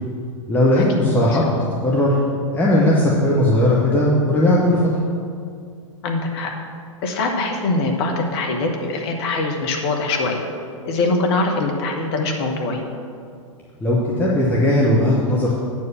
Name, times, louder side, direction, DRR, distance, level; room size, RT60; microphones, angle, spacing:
voice 1, 0.5-2.2 2.5-4.9 13.8-15.6, left 1 dB, 10° left, -6 dB, 1.1 m, -17 dB
voice 2, 6.0-6.5 7.0-10.4 10.8-12.8, left 2 dB, 50° left, 2 dB, 1.3 m, -22 dB
8.2 x 4.7 x 7.2 m, 2.3 s
figure-of-eight pair, 100°, 17 cm